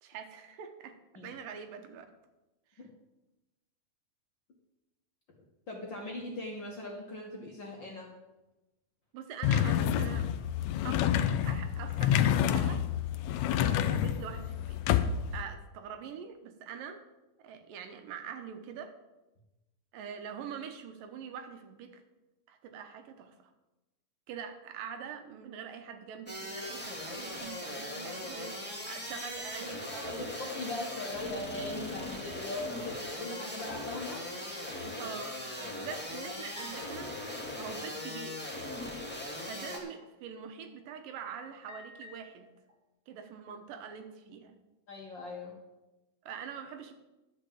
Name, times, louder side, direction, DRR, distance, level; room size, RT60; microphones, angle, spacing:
voice 1, 0.0-1.0 1.2-2.1 2.7-2.8 9.1-10.3 10.8-11.1 11.4-12.9 13.5-14.8 15.3-17.0 17.4-18.9 19.9-22.0 22.5-23.3 24.3-30.4 35.0-35.4 35.7-37.2 37.6-38.5 39.5-42.5 43.1-44.5 46.3-46.9, right 7 dB, 80° right, 7 dB, 2.6 m, -44 dB
voice 2, 5.7-8.1 29.9-30.1 30.4-34.2 34.8-35.1 35.6-35.9 44.9-45.5, left 2 dB, 45° left, -2 dB, 1.7 m, -40 dB
sound 1, 9.4-15.4, left 10 dB, 85° left, 1.6 m, -28 dB
sound 2, 26.3-39.8, left 1 dB, 5° left, 1.3 m, -39 dB
sound 3, 36.6-38.0 39.7-40.0 40.7-40.9 41.7-42.7, right 1 dB, 45° right, 1.9 m, -51 dB
11.5 x 6.5 x 7.7 m, 1.0 s
omnidirectional pair, 4.0 m